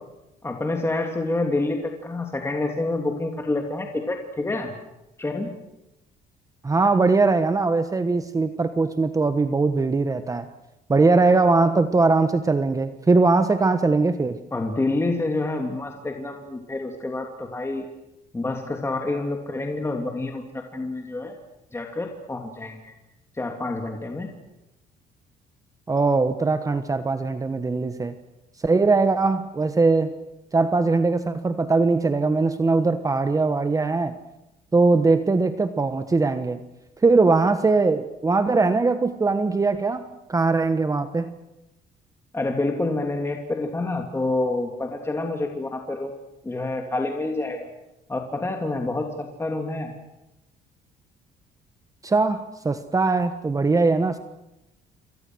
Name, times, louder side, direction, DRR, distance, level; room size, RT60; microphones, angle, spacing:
voice 1, 0.4-4.7 5.2-5.6 14.5-17.9 18.3-21.4 21.7-22.9 23.3-24.3 42.3-46.2 46.4-47.7 48.1-49.9, left 2 dB, 15° left, 3 dB, 3.0 m, -28 dB
voice 2, 6.6-10.5 10.9-14.4 25.9-28.1 28.6-30.1 30.5-34.2 34.7-36.6 37.0-41.3 52.0-54.2, right 3 dB, 20° right, 10 dB, 1.4 m, -21 dB
28.0 x 25.0 x 6.4 m, 0.93 s
cardioid pair, 110°, 17 cm